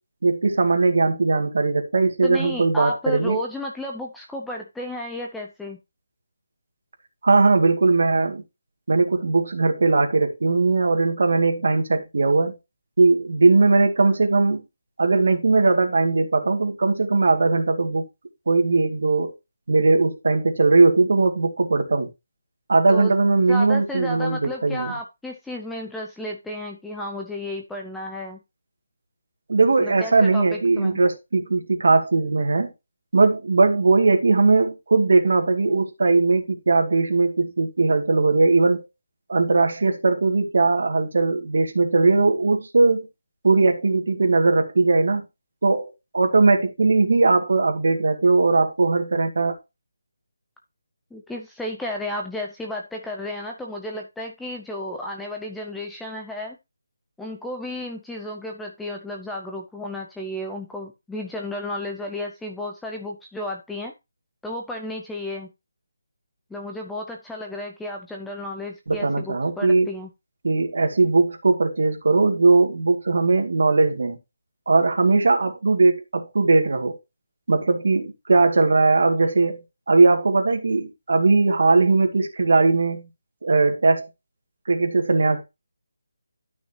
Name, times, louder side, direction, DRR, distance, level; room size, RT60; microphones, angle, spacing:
voice 1, 0.2-3.4 7.2-8.4 8.9-12.6 13.0-14.6 15.0-18.1 18.5-19.3 19.7-22.1 22.7-24.9 29.5-32.7 33.1-38.8 39.3-43.1 43.4-45.2 45.6-49.6 68.9-69.9 70.4-74.2 74.7-77.0 77.5-83.1 83.4-84.1 84.7-85.4, right 3 dB, 55° right, 2.1 m, -19 dB
voice 2, 2.2-5.8 22.9-23.1 23.5-28.4 29.8-31.0 51.1-56.6 57.2-63.9 64.4-65.5 66.5-70.1, left 1 dB, ahead, 0.5 m, -33 dB
12.5 x 5.9 x 2.8 m
hypercardioid pair, 180°, 0 cm